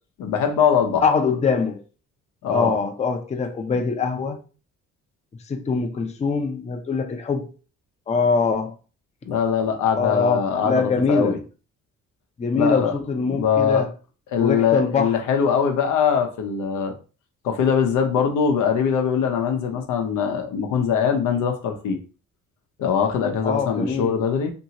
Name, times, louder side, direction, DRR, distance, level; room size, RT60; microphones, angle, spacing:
voice 1, 0.2-1.0 2.4-2.7 9.2-11.4 12.6-12.9 13.3-13.8 14.3-16.9 17.4-22.0 22.8-24.5, left 7 dB, 85° left, 0.7 m, -22 dB
voice 2, 1.0-1.8 2.5-4.4 5.5-7.5 8.1-8.7 9.9-11.4 12.4-13.9 14.4-15.1 23.4-24.2, left 5 dB, 25° left, 0.5 m, -23 dB
2.8 x 2.6 x 2.8 m
cardioid pair, 90°, 30 cm